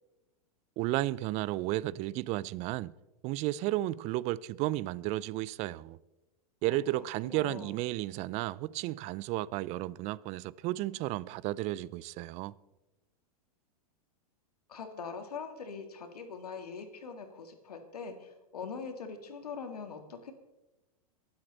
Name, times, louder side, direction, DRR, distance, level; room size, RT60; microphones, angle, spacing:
voice 1, 0.8-2.9 3.2-6.0 6.6-12.5, right 16 dB, 35° right, 0.4 m, -33 dB
voice 2, 6.7-7.7 14.7-20.3, left 5 dB, 90° left, 1.9 m, -43 dB
23.5 x 7.9 x 4.0 m
hypercardioid pair, 115°, 19 cm